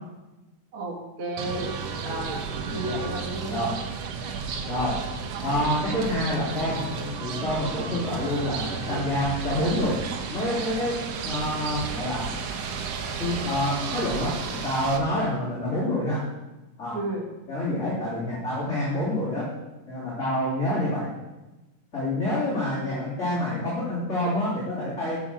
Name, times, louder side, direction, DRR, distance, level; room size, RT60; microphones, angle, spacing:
voice 1, 0.7-1.7 2.0-2.4 2.7-3.6 16.9-17.3 22.3-22.4 22.7-23.0, right 2 dB, 50° right, -1 dB, 1.9 m, -32 dB
sound 1, 1.4-15.0, right 5 dB, 65° right, 1.8 m, -32 dB
voice 2, 2.7-3.0 3.5-3.8 4.7-5.0 5.4-6.8 7.2-10.0 10.3-12.3 13.2-16.2 16.8-17.0 17.5-19.5 19.9-21.1 21.9-25.2, left 1 dB, 20° left, -10 dB, 3.7 m, -27 dB
12.0 x 5.9 x 6.4 m, 1.1 s
omnidirectional pair, 3.7 m